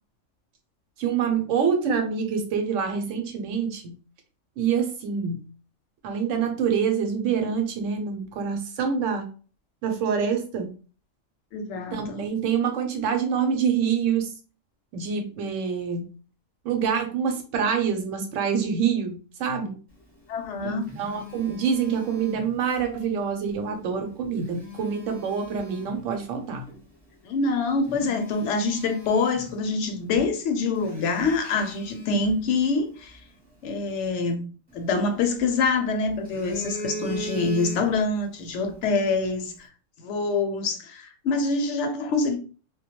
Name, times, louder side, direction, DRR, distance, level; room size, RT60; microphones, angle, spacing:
voice 1, 1.0-4.0 4.6-5.4 6.0-9.3 9.8-10.7 11.9-14.3 14.9-16.1 16.6-19.8 20.6-26.7, right 6 dB, 85° right, 1.0 m, -26 dB
voice 2, 11.5-12.3 20.3-21.0 27.2-33.2 33.6-34.4 34.7-39.7 40.0-42.4, left 3 dB, 70° left, 0.9 m, -25 dB
Telephone, 20.3-22.9 24.1-26.0 26.7-26.8 27.4-27.5 27.8-29.9 30.1-30.3 30.8-33.2 34.7-35.7 36.1-38.2 38.5-38.7, equal, 10° right, 0.8 m, -40 dB
2.2 x 2.2 x 2.8 m
omnidirectional pair, 1.3 m